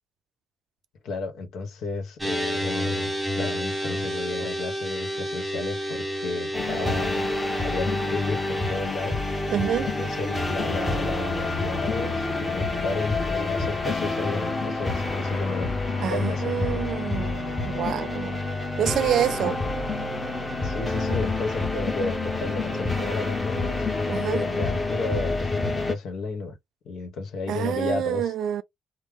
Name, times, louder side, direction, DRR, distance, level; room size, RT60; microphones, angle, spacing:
voice 1, 1.0-7.3 7.6-9.2 9.8-15.7 16.0-16.9 19.4-19.6 20.6-26.6 26.8-28.3, left 3 dB, 75° left, 1.1 m, -33 dB
sound 1, 2.2-8.8, equal, ahead, 1.4 m, -30 dB
sound 2, 6.5-25.9, left 3 dB, 20° left, 1.1 m, -28 dB
voice 2, 9.5-9.9 16.0-18.4 18.8-19.6 24.1-24.4 27.5-28.6, right 10 dB, 75° right, 0.4 m, -27 dB
3.2 x 2.1 x 3.5 m
cardioid pair, 90°, 0 cm